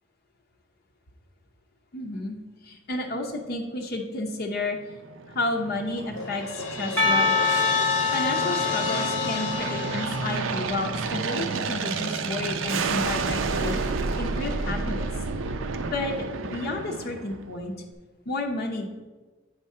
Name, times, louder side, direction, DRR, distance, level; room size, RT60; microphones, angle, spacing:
voice 1, 1.9-2.4 2.6-4.8 5.3-7.6 8.1-13.8 14.2-15.1 15.9-16.2 16.5-17.7 18.3-18.9, left 2 dB, 50° left, 1 dB, 0.7 m, -31 dB
Aircraft, 4.9-17.7, right 4 dB, 70° right, 0.5 m, -31 dB
Crash cymbal, 6.1-11.1, left 4 dB, 75° left, 1.0 m, -33 dB
Percussion, 7.0-10.9, left 4 dB, 10° left, 0.8 m, -26 dB
8.6 x 3.7 x 5.4 m, 1.3 s
head